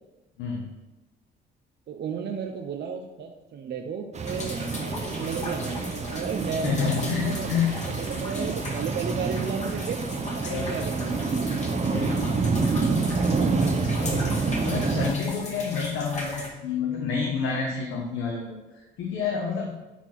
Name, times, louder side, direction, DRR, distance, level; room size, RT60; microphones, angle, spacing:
voice 1, 0.4-0.7 6.6-8.0 10.5-10.8 11.9-12.4 14.0-19.9, left 6 dB, 85° left, 0 dB, 1.3 m, -29 dB
voice 2, 1.9-10.0 10.4-11.2, right 6 dB, 60° right, 3 dB, 0.9 m, -33 dB
sound 1, 4.1-15.1, right 4 dB, 35° right, 1.0 m, -27 dB
sound 2, 4.2-16.5, left 2 dB, 35° left, 2.3 m, -38 dB
9.2 x 4.4 x 5.9 m, 1.0 s
cardioid pair, 90°, 20 cm